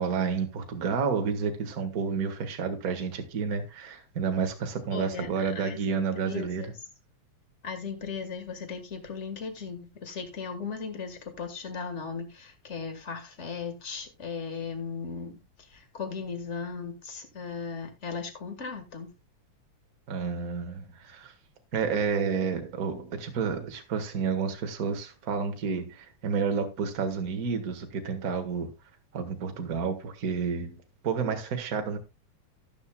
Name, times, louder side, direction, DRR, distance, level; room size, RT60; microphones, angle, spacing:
voice 1, 0.0-6.7 20.1-21.3 21.7-28.7 29.1-32.0, right 6 dB, 40° right, 1.6 m, -30 dB
voice 2, 4.9-6.7 7.6-19.1, left 5 dB, 35° left, 1.2 m, -37 dB
13.0 x 10.5 x 2.3 m
omnidirectional pair, 3.3 m